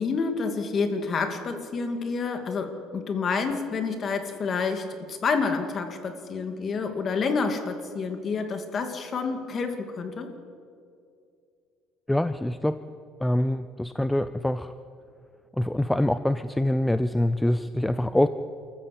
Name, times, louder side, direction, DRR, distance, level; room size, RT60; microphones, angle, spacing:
voice 1, 0.0-10.3, left 4 dB, 35° left, 6 dB, 2.4 m, -28 dB
voice 2, 12.1-12.8 13.2-14.7 15.5-18.3, left 1 dB, 5° left, 12 dB, 0.5 m, -25 dB
28.0 x 14.5 x 8.5 m, 2.4 s
cardioid pair, 140°, 0 cm